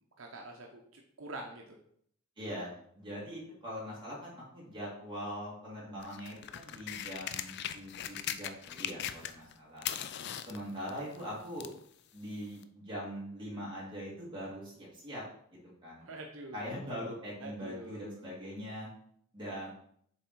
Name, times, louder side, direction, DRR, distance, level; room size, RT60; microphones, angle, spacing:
voice 1, 0.2-1.8 16.0-16.8 17.4-18.2 19.5-19.7, right 2 dB, 75° right, 1 dB, 0.9 m, -46 dB
voice 2, 2.4-9.9 10.5-11.7 12.1-15.2 15.5-16.1 16.5-18.9 19.3-19.7, equal, 25° right, -6 dB, 2.8 m, -42 dB
sound 1, 6.0-9.5 9.8-11.8 12.6-12.7, left 10 dB, 55° left, 0.4 m, -39 dB
7.3 x 3.6 x 4.6 m, 0.66 s
head